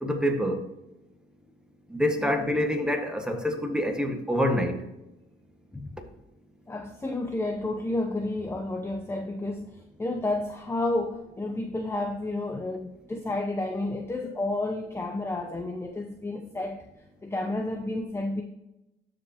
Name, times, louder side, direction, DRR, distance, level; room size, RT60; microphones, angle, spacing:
voice 1, 0.0-0.7 1.9-4.8, equal, 5° right, 3 dB, 1.6 m, -26 dB
voice 2, 6.7-16.8 17.2-18.4, left 2 dB, 10° left, 4 dB, 0.8 m, -31 dB
14.0 x 5.1 x 2.9 m, 0.94 s
cardioid pair, 90°, 20 cm